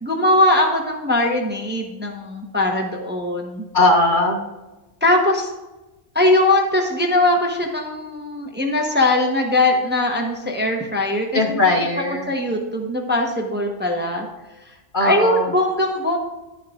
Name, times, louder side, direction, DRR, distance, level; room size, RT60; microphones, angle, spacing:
voice 1, 0.0-3.7 5.0-5.5 6.1-11.7 12.3-14.3 15.0-16.2, left 1 dB, 10° right, 1 dB, 0.9 m, -20 dB
voice 2, 3.7-4.4 11.3-12.3 14.9-15.5, left 2 dB, 40° left, 2 dB, 1.0 m, -19 dB
11.0 x 9.1 x 2.5 m, 1.1 s
omnidirectional pair, 1.4 m